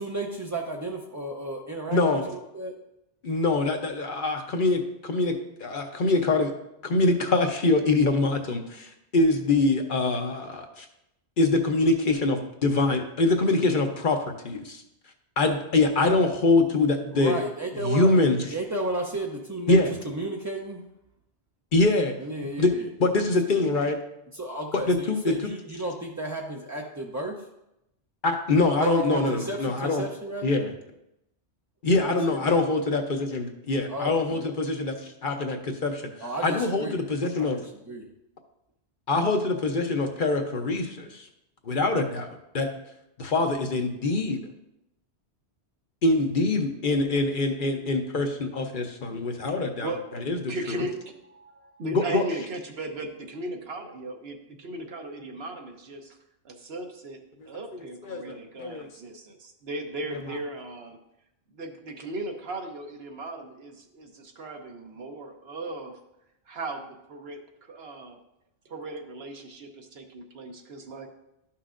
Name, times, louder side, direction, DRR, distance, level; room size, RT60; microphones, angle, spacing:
voice 1, 0.0-2.8 17.1-20.8 22.2-22.9 24.3-27.5 28.8-30.5 32.1-32.5 33.9-34.8 36.2-37.0 37.4-38.1, right 2 dB, 25° right, -1 dB, 0.4 m, -33 dB
voice 2, 1.9-2.3 3.2-5.3 5.6-6.5 6.8-10.9 11.4-14.2 14.4-14.8 15.4-17.4 17.9-18.4 19.7-19.9 21.7-22.1 22.6-22.7 23.0-24.0 24.9-25.2 28.2-30.0 30.4-30.7 31.8-34.9 35.2-36.1 36.4-37.6 39.1-41.3 41.7-42.3 42.5-42.7 43.2-44.4 46.0-49.9 50.3-50.4 50.7-50.8 51.9-52.2 57.7-58.9, left 3 dB, 55° left, 4 dB, 0.8 m, -24 dB
voice 3, 49.8-50.1 50.5-56.2 56.4-57.2 57.5-61.0 61.5-66.0 66.5-68.2 68.7-71.1, right 1 dB, 65° right, 4 dB, 1.1 m, -37 dB
12.0 x 5.8 x 2.5 m, 0.84 s
omnidirectional pair, 1.1 m